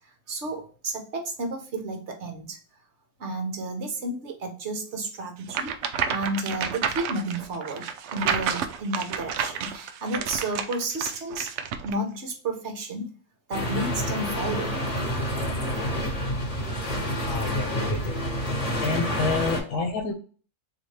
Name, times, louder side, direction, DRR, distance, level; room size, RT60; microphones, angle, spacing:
voice 1, 0.3-2.6 3.2-5.7 6.0-11.5 11.8-13.1 13.5-14.8 15.7-15.9 19.0-19.6, right 2 dB, 50° right, 1.1 m, -32 dB
sound 1, 5.5-11.9, right 7 dB, 70° right, 0.7 m, -30 dB
sound 2, 13.5-19.6, equal, 25° left, 1.2 m, -28 dB
voice 2, 17.2-18.2 18.8-20.1, left 4 dB, 75° left, 1.1 m, -29 dB
4.1 x 2.9 x 3.1 m
omnidirectional pair, 1.6 m